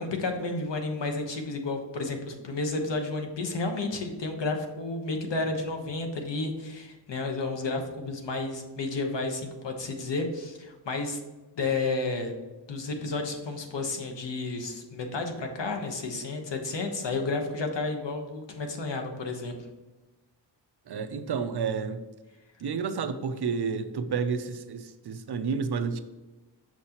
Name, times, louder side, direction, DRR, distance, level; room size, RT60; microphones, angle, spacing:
voice 1, 0.0-11.2 11.6-12.3 12.7-19.6, left 3 dB, 70° left, 4 dB, 1.1 m, -31 dB
voice 2, 20.9-22.0 22.6-26.0, right 5 dB, 60° right, 9 dB, 0.6 m, -30 dB
6.4 x 6.0 x 2.9 m, 1.2 s
wide cardioid pair, 155°, 44 cm